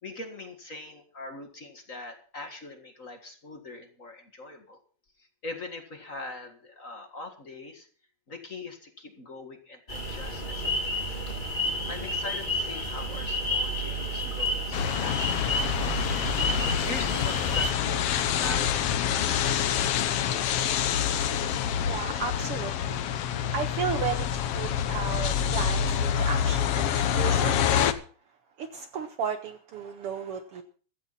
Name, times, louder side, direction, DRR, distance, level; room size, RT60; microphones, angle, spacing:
voice 1, 0.0-4.8 5.4-7.9 8.3-11.0 11.4-11.6 11.9-16.1 16.5-20.6, left 2 dB, 35° left, 5 dB, 1.5 m, -42 dB
sound 1, 9.9-17.7, equal, 15° left, 2.1 m, -30 dB
sound 2, 14.7-27.9, left 9 dB, 65° left, 1.6 m, -27 dB
voice 2, 21.8-27.9 28.6-30.6, right 6 dB, 80° right, 9 dB, 1.2 m, -34 dB
15.5 x 14.0 x 4.1 m, 0.41 s
omnidirectional pair, 3.7 m